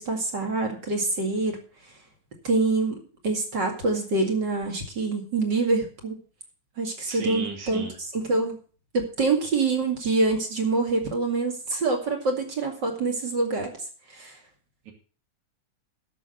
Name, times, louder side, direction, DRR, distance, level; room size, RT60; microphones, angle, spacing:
voice 1, 0.0-1.6 2.4-6.2 6.8-7.9 8.1-8.6 8.9-13.7 14.1-14.4, right 3 dB, 40° right, 3 dB, 2.6 m, -25 dB
voice 2, 7.1-7.9 14.9-15.0, right 5 dB, 75° right, 3 dB, 3.7 m, -34 dB
11.5 x 7.0 x 6.6 m, 0.40 s
omnidirectional pair, 3.3 m